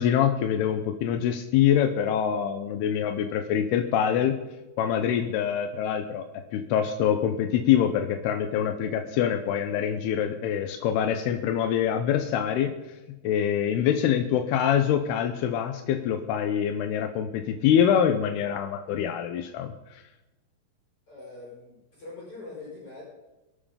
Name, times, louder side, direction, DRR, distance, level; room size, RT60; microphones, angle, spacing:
voice 1, 0.0-4.4 4.8-6.3 6.5-12.7 13.2-19.7, left 9 dB, 85° left, 6 dB, 2.8 m, -25 dB
voice 2, 21.1-23.0, left 3 dB, 35° left, -5 dB, 6.1 m, -43 dB
23.0 x 7.7 x 5.1 m, 1.0 s
omnidirectional pair, 4.6 m